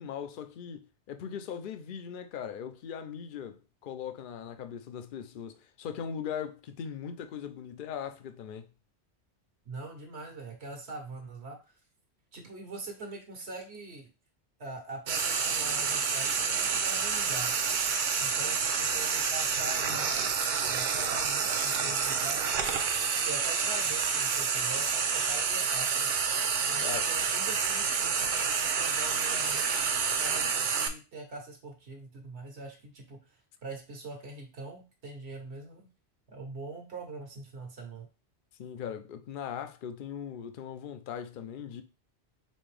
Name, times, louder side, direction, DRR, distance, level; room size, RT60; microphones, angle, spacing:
voice 1, 0.0-8.7 26.8-27.1 38.6-41.8, left 8 dB, 55° left, 0.7 m, -39 dB
voice 2, 9.6-11.6 12.3-14.1 14.6-17.6 18.2-22.5 23.2-26.1 26.7-33.4 33.6-35.9 36.3-38.1, right 2 dB, 75° right, 1.4 m, -43 dB
Frying (food), 15.1-30.9, right 6 dB, 55° right, 0.6 m, -28 dB
4.3 x 3.4 x 3.3 m
omnidirectional pair, 1.1 m